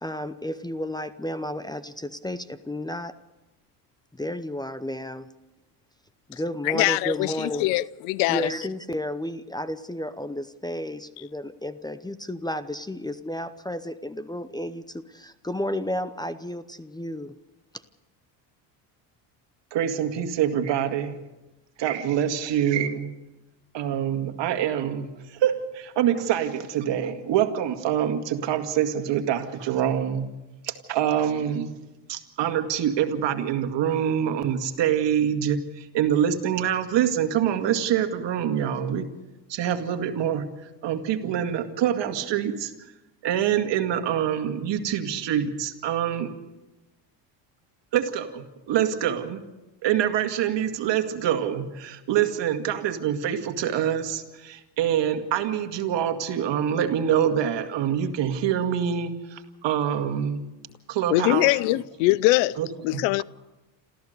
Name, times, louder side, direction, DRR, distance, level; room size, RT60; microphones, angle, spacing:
voice 1, 0.0-3.1 4.1-5.3 6.3-7.7 8.3-17.3, left 1 dB, 10° left, 0.7 m, -32 dB
voice 2, 6.7-8.5 61.1-63.2, left 19 dB, 85° left, 0.6 m, -23 dB
voice 3, 19.7-21.2 21.8-23.1 23.7-25.1 25.4-30.3 30.6-31.7 32.1-39.1 39.5-40.5 40.8-42.7 43.2-46.3 47.9-49.4 49.8-60.4 60.9-61.5 62.6-62.7 62.9-63.2, right 9 dB, 60° right, 2.2 m, -25 dB
27.5 x 14.5 x 6.7 m
supercardioid pair, 95°, 50 cm